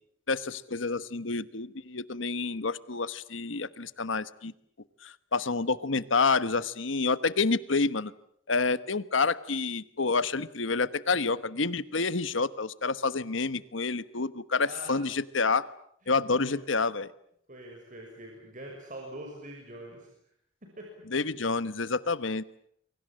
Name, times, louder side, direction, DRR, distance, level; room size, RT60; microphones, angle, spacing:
voice 1, 0.3-4.5 5.0-8.1 8.5-15.6 16.1-17.1 21.1-22.4, left 4 dB, 75° left, 15 dB, 1.2 m, -28 dB
voice 2, 14.6-15.0 16.0-16.6 17.5-20.1 20.8-20.9, right 1 dB, 40° right, 0 dB, 6.2 m, -44 dB
29.5 x 24.0 x 7.6 m, 0.69 s
head